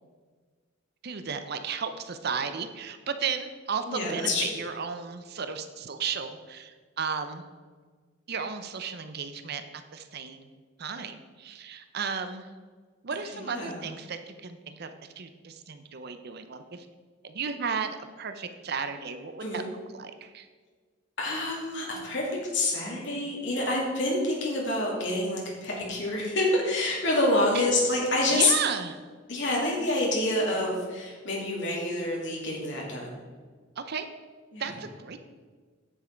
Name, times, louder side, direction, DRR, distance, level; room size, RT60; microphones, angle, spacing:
voice 1, 1.0-7.5 8.3-10.5 10.8-12.5 13.0-16.9 17.2-19.6 19.9-20.5 27.5-27.7 28.3-29.0 33.8-34.1 34.6-35.2, right 6 dB, 55° right, 9 dB, 0.6 m, -34 dB
voice 2, 3.9-4.4 13.5-13.8 19.4-19.6 21.2-22.3 22.5-28.5 29.3-33.1 34.5-34.6, left 2 dB, 65° left, -3 dB, 2.5 m, -27 dB
10.0 x 7.4 x 4.5 m, 1.5 s
head